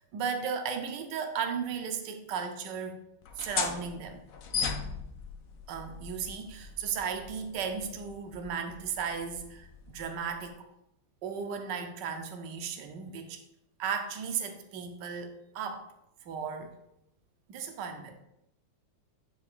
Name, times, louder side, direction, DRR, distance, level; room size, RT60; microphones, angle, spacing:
voice 1, 0.0-3.0 3.4-4.2 5.7-10.6 11.2-13.4 13.8-15.9 16.2-16.7 17.5-18.2, right 6 dB, 70° right, 5 dB, 1.3 m, -35 dB
sound 1, 3.2-10.5, left 6 dB, 70° left, 0.8 m, -38 dB
10.0 x 4.8 x 2.4 m, 0.82 s
omnidirectional pair, 2.1 m